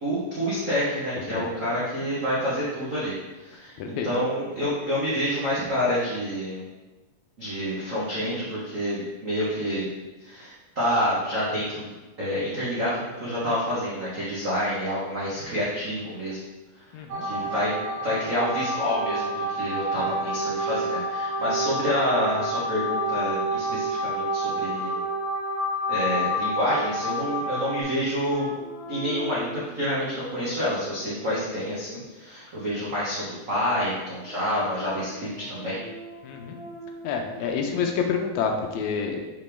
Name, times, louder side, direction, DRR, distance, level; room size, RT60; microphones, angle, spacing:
voice 1, 0.0-6.6 7.4-9.9 10.2-16.4 16.7-16.8 17.2-17.7 18.0-25.0 25.9-28.5 28.9-35.8, equal, 60° right, -8 dB, 0.8 m, -28 dB
voice 2, 3.8-4.1 16.9-17.3 36.2-36.6 37.0-39.2, left 6 dB, 80° left, 3 dB, 1.9 m, -28 dB
sound 1, 17.1-27.8, equal, 80° right, 2.6 m, -28 dB
sound 2, 28.3-29.7 30.3-32.0 34.1-37.5, equal, 55° left, 2.1 m, -42 dB
5.3 x 5.2 x 3.4 m, 1.1 s
omnidirectional pair, 3.4 m